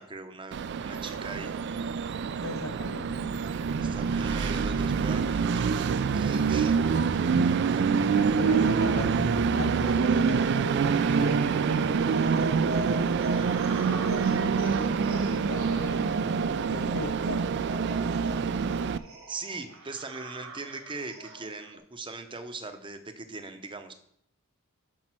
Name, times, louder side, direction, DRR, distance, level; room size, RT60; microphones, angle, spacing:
voice 1, 0.0-1.6 3.8-6.8 19.3-23.9, right 3 dB, 25° right, 0.7 m, -40 dB
Train, 0.5-19.0, right 5 dB, 55° right, 0.3 m, -26 dB
voice 2, 2.4-3.4 7.9-12.9 13.7-17.5, left 3 dB, 75° left, 0.8 m, -39 dB
sound 1, 7.1-21.8, right 1 dB, 70° right, 1.5 m, -40 dB
7.4 x 5.4 x 6.1 m
head